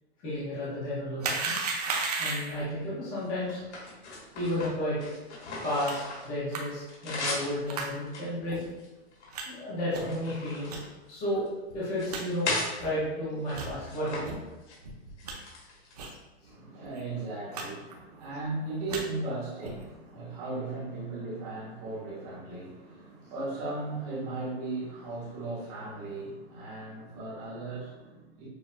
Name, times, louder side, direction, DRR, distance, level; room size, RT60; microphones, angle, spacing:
voice 1, 0.2-1.6 2.2-3.6 4.3-5.1 5.6-5.9 6.2-8.6 9.4-10.7 11.1-11.4 11.7-12.5 12.8-14.4, left 1 dB, 10° left, -10 dB, 0.6 m, -32 dB
sound 1, 1.2-2.6 5.9-6.0 6.5-6.6 7.7-7.9 8.5-8.6 9.3-9.4 9.9-10.2 10.7-10.8 11.4-11.5 11.7-11.8 12.1-12.2 12.8-12.9 13.5-13.7 14.2-14.4 14.8-15.3 16.0-16.2 16.4-16.5 16.8-17.0 17.5-17.6 17.9-18.3 18.7-19.0 19.6-19.9, right 4 dB, 35° right, 0.5 m, -34 dB
sound 2, 1.3-2.2 2.8-6.4 6.6-7.6 8.1-9.4 9.8-11.5 11.9-12.8 13.4-14.3 14.5-14.8 15.2-16.1, left 3 dB, 85° left, 1.4 m, -38 dB
voice 2, 16.5-28.5, right 2 dB, 15° right, -8 dB, 1.0 m, -37 dB
6.3 x 2.4 x 2.5 m, 1.1 s
hypercardioid pair, 180°, 34 cm